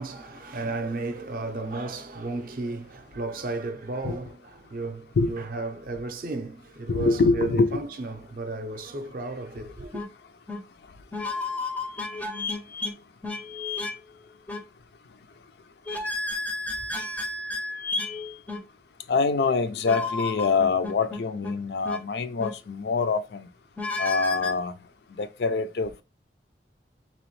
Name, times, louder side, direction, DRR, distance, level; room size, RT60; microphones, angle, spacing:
voice 1, 0.0-10.0, right 3 dB, 50° right, 0.5 m, -34 dB
voice 2, 6.9-7.8 19.1-23.5 24.0-24.7 25.2-26.0, left 4 dB, 65° left, 0.4 m, -25 dB
sound 1, 9.9-10.1 10.5-10.6 11.1-12.9 13.2-14.0 14.5-14.6 15.9-18.6 19.9-21.5 21.8-22.0 22.4-22.5 23.8-24.5, left 3 dB, 10° left, 0.4 m, -32 dB
3.4 x 3.0 x 3.0 m
head